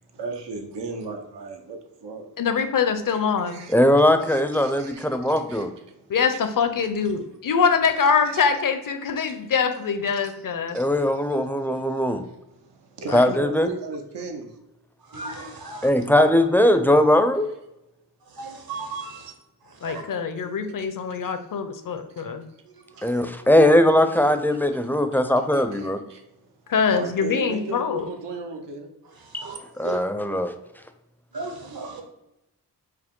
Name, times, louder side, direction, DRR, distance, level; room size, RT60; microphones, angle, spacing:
voice 1, 0.1-2.6 3.1-3.2 3.5-3.8 4.2-6.0 6.8-6.9 8.3-8.5 9.3-9.4 10.1-10.3 10.7-11.0 12.6-14.5 20.8-20.9 21.1-21.3 23.0-23.1 24.1-24.3 25.1-25.2 25.5-26.2 26.9-28.9, right 3 dB, 80° right, 3 dB, 0.8 m, -36 dB
voice 2, 2.4-3.6 6.1-10.8 13.1-13.3 19.8-22.4 26.7-28.1, left 6 dB, 50° left, 9 dB, 0.6 m, -24 dB
voice 3, 3.7-5.7 10.7-12.2 13.1-13.7 15.8-17.5 23.0-26.0 29.3-29.5 29.8-30.5, left 1 dB, 5° left, 7 dB, 0.5 m, -19 dB
voice 4, 15.1-15.9 18.3-19.3 19.8-20.0 29.3-30.0 31.3-32.0, right 4 dB, 60° right, 4 dB, 1.1 m, -35 dB
4.7 x 2.1 x 3.7 m, 0.90 s
cardioid pair, 45°, 41 cm